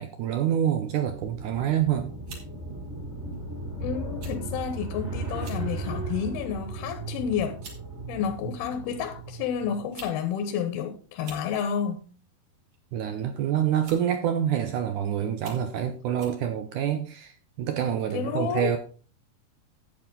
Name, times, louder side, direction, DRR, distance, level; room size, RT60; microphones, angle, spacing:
voice 1, 0.0-2.1 12.9-18.8, right 10 dB, 80° right, 1.8 m, -27 dB
sound 1, 1.1-9.9, right 2 dB, 20° right, 2.4 m, -36 dB
sound 2, 1.6-1.8 2.3-2.5 3.3-3.5 4.2-4.4 4.7-4.8 5.3-5.6 6.2-6.4 7.2-7.3 7.6-7.8 8.9-9.0 9.7-10.2 10.4-10.5 11.1-11.5 12.7-13.0 13.8-14.1 14.7-14.8 15.3-15.7 16.2-16.4, right 3 dB, 40° right, 3.5 m, -46 dB
voice 2, 3.8-7.6 8.1-12.1 15.2-15.4 18.1-18.8, left 8 dB, 75° left, 2.8 m, -30 dB
10.5 x 8.9 x 3.8 m
omnidirectional pair, 4.6 m